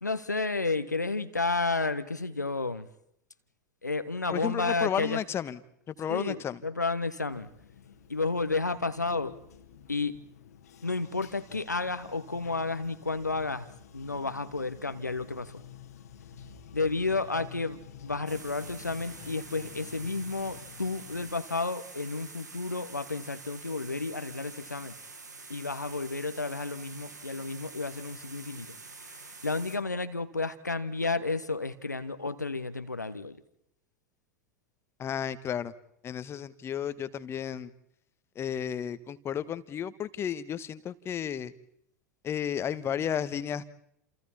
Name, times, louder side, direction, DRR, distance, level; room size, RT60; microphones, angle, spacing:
voice 1, 0.0-2.9 3.8-5.2 6.1-7.5 8.1-9.4 9.9-10.3 10.8-13.7 13.9-15.6 16.7-24.9 25.5-28.8 29.0-33.4, left 3 dB, 85° left, 11 dB, 1.2 m, -31 dB
voice 2, 4.3-5.6 5.9-6.6 35.0-35.7 36.0-37.7 38.3-41.5 42.2-43.6, left 9 dB, 25° left, 14 dB, 1.4 m, -33 dB
Bathtub (filling or washing), 7.3-21.3, left 7 dB, 65° left, 1.8 m, -50 dB
sound 1, 18.3-29.8, right 3 dB, 75° right, 2.2 m, -47 dB
30.0 x 28.0 x 4.3 m, 0.74 s
figure-of-eight pair, 85°, 9 cm